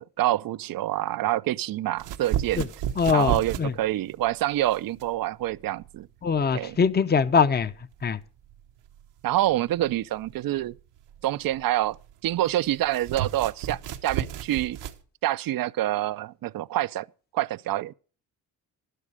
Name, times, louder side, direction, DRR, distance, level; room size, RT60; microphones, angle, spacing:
voice 1, 0.0-2.7 3.1-6.1 6.5-6.8 9.2-10.8 11.2-12.0 12.2-14.8 15.2-17.1 17.3-17.9, right 14 dB, 55° right, 0.6 m, -27 dB
sound 1, 2.0-15.0, right 11 dB, 85° right, 1.2 m, -35 dB
voice 2, 3.0-3.7 6.2-7.7 8.0-8.2, left 6 dB, 25° left, 0.8 m, -22 dB
12.0 x 11.5 x 4.9 m
supercardioid pair, 65°, 41 cm